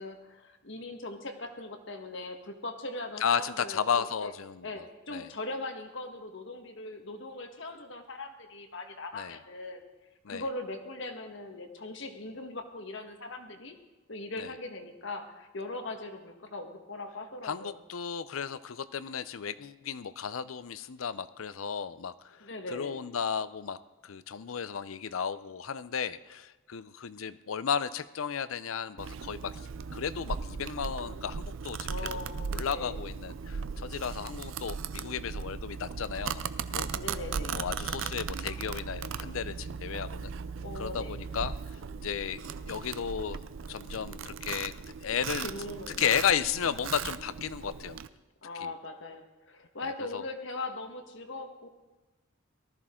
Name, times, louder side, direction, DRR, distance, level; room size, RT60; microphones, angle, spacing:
voice 1, 0.0-4.3 4.6-9.8 10.3-13.7 14.1-17.8 22.4-23.0 31.9-33.0 36.9-37.6 40.6-41.2 45.4-46.1 48.4-51.7, left 2 dB, 60° left, 5 dB, 1.4 m, -40 dB
voice 2, 3.2-4.7 5.1-5.3 9.1-9.4 10.2-10.4 14.4-14.5 17.4-23.8 24.0-29.6 29.9-31.9 32.5-36.4 36.7-36.9 37.5-40.3 40.8-41.5 42.0-43.4 43.7-44.7 45.0-45.5 46.0-48.0 48.6-48.7 50.1-50.2, left 7 dB, 80° left, 15 dB, 0.5 m, -34 dB
Domestic sounds home sounds, 29.0-48.1, right 6 dB, 70° right, 0.5 m, -38 dB
18.5 x 13.5 x 3.7 m, 1.1 s
head